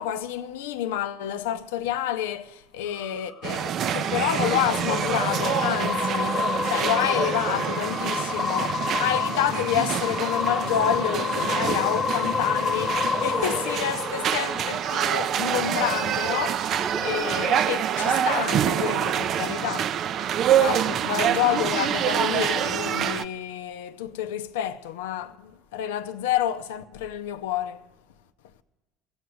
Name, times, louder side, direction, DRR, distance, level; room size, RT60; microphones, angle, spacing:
voice 1, 0.0-19.9 20.6-27.8, left 11 dB, 80° left, 0.6 m, -29 dB
sound 1, 2.8-15.3, left 6 dB, 40° left, 0.9 m, -30 dB
sound 2, 3.4-23.2, right 9 dB, 50° right, 0.4 m, -26 dB
sound 3, 16.7-17.7, right 4 dB, 35° right, 0.9 m, -36 dB
16.5 x 7.9 x 7.6 m
hypercardioid pair, 75°, 0 cm